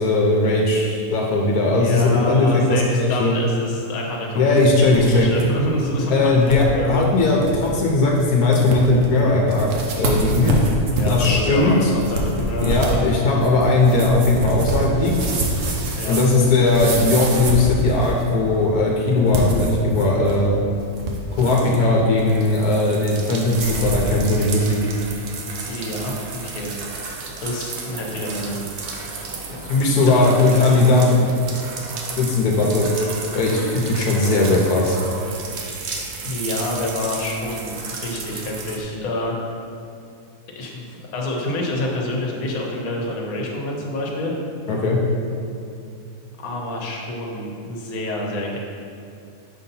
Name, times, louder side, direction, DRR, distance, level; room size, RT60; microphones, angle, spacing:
voice 1, 0.0-3.3 4.4-5.3 6.1-9.7 10.0-10.5 11.1-11.9 12.6-15.2 16.1-20.5 21.3-24.8 29.7-31.3 32.2-32.8 33.3-35.0 44.7-45.0, left 2 dB, 85° left, -2 dB, 1.3 m, -18 dB
voice 2, 1.7-7.1 10.9-13.0 16.0-16.2 25.6-26.7 27.4-29.3 30.0-30.6 36.2-39.4 40.5-40.9 41.1-44.3 46.4-48.6, left 1 dB, 70° left, -1 dB, 1.3 m, -27 dB
sound 1, 4.6-5.5 5.8-5.9 6.5-6.7 7.1-7.2 7.4-7.7 8.2-8.3 8.5-9.0 9.5-18.3 19.2-20.5 20.8-21.8 23.5-24.1, right 1 dB, 60° right, 1.1 m, -26 dB
sound 2, 20.7-38.8, right 4 dB, 85° right, 1.2 m, -33 dB
6.4 x 2.8 x 5.4 m, 2.5 s
omnidirectional pair, 1.6 m